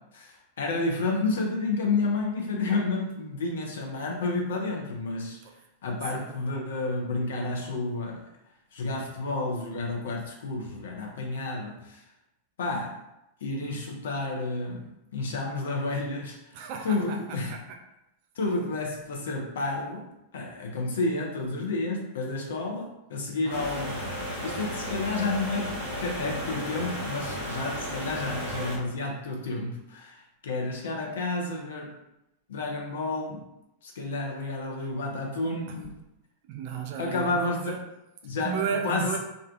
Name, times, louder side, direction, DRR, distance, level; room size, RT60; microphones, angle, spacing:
voice 1, 0.0-5.4 5.8-8.3 8.7-12.0 12.6-13.0 13.4-16.4 16.8-17.5 18.4-20.1 20.3-24.1 24.4-30.2 30.4-31.9 32.5-33.4 33.8-36.0 37.0-37.8 38.2-39.1, left 3 dB, 60° left, 0 dB, 0.5 m, -30 dB
voice 2, 16.5-17.6 23.5-24.1 35.7-35.8 36.5-37.8 38.4-39.2, right 6 dB, 45° right, 4 dB, 0.4 m, -34 dB
sound 1, 23.5-28.8, equal, 85° left, 1.2 m, -34 dB
2.4 x 2.3 x 2.4 m, 0.88 s
figure-of-eight pair, 90°, 0 cm